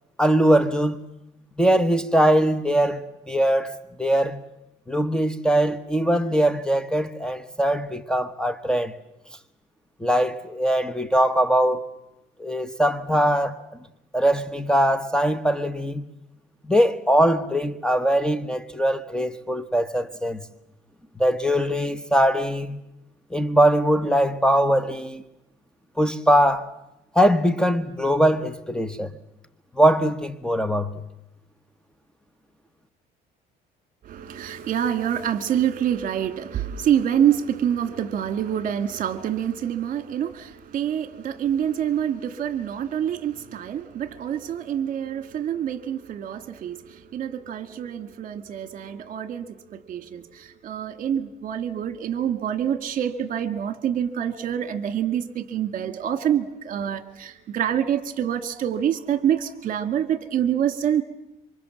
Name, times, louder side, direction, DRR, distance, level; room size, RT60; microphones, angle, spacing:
voice 1, 0.2-1.0 1.6-4.4 4.9-8.9 10.0-11.8 12.4-13.6 14.1-16.0 16.6-20.4 21.2-22.8 23.3-25.2 26.0-26.7 27.1-29.1 29.8-30.9, equal, 5° left, 1.2 m, -21 dB
voice 2, 34.0-61.0, right 9 dB, 55° right, 2.2 m, -26 dB
27.0 x 25.0 x 7.5 m
cardioid pair, 110°, 17 cm